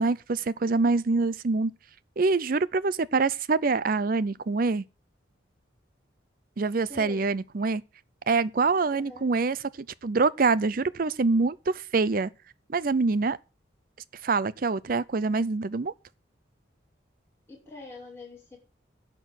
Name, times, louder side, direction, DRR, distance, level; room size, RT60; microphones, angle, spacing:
voice 1, 0.0-1.7 2.2-4.8 6.6-7.8 8.3-12.3 12.7-13.4 14.2-15.9, right 4 dB, 50° right, 0.5 m, -25 dB
voice 2, 6.9-7.3 8.9-9.3 17.5-18.6, left 2 dB, 15° left, 5.9 m, -44 dB
11.0 x 6.2 x 7.8 m
head